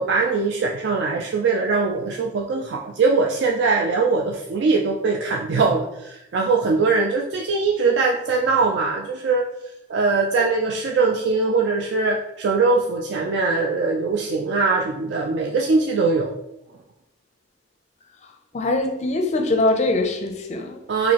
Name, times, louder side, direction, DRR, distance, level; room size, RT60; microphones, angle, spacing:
voice 1, 0.0-9.5 9.9-16.3 20.9-21.1, right 4 dB, 65° right, 1 dB, 0.3 m, -21 dB
voice 2, 18.5-20.8, left 2 dB, 40° left, 5 dB, 0.4 m, -22 dB
4.1 x 2.6 x 2.9 m, 0.85 s
head